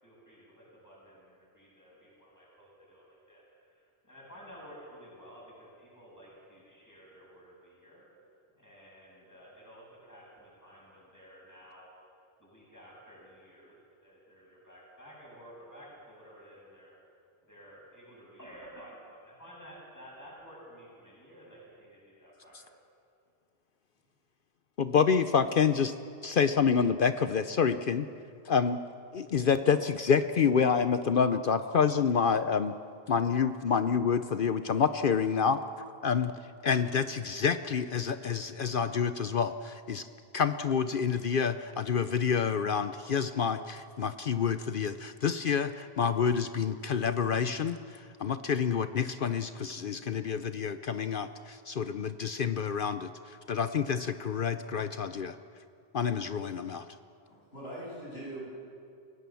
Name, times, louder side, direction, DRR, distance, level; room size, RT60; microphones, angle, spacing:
voice 1, 0.0-8.1 8.6-11.9 12.4-16.9 17.4-22.7, equal, 15° left, -4 dB, 7.0 m, -52 dB
voice 2, 24.8-25.9 26.2-28.1 28.4-28.8 29.1-32.7 33.1-35.6 36.0-36.3 36.6-40.1 40.3-55.4 55.9-56.9, left 6 dB, 60° left, 10 dB, 0.8 m, -28 dB
voice 3, 57.3-58.5, right 1 dB, 75° left, -4 dB, 8.3 m, -42 dB
29.0 x 17.5 x 7.0 m, 2.4 s
omnidirectional pair, 1.0 m